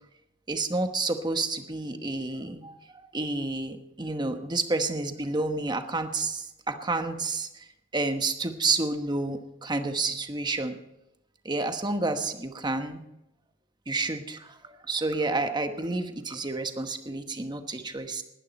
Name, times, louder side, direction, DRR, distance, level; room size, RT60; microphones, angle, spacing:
voice 1, 0.5-2.8 3.1-7.7 7.9-10.8 11.4-13.0 13.9-18.2, right 3 dB, 20° right, 7 dB, 1.1 m, -30 dB
19.5 x 11.0 x 4.3 m, 0.89 s
head